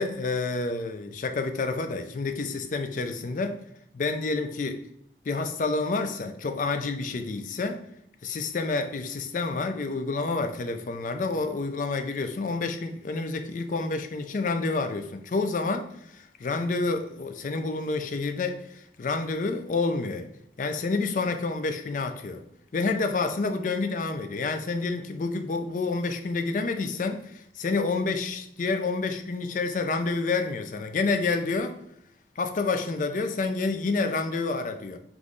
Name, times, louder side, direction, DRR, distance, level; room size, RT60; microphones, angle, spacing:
voice 1, 0.0-3.6 3.9-4.8 5.3-7.8 8.2-20.3 20.6-22.4 22.7-31.8 32.4-35.0, left 3 dB, 45° left, 0.4 m, -29 dB
3.6 x 3.1 x 3.8 m
head